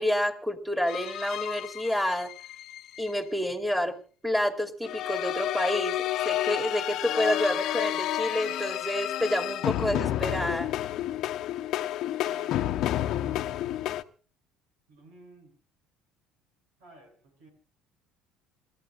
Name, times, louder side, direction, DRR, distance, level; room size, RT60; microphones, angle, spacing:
voice 1, 0.0-2.3 3.0-4.0 4.2-10.7, left 1 dB, 5° right, 3 dB, 2.6 m, -29 dB
sound 1, 0.9-3.1 4.8-14.0, left 13 dB, 60° left, 0.8 m, -30 dB
voice 2, 12.2-12.8 13.2-13.6 14.9-15.6 16.8-17.5, right 2 dB, 85° right, 4 dB, 7.3 m, -52 dB
28.5 x 13.5 x 2.5 m, 0.40 s
hypercardioid pair, 75°, 0 cm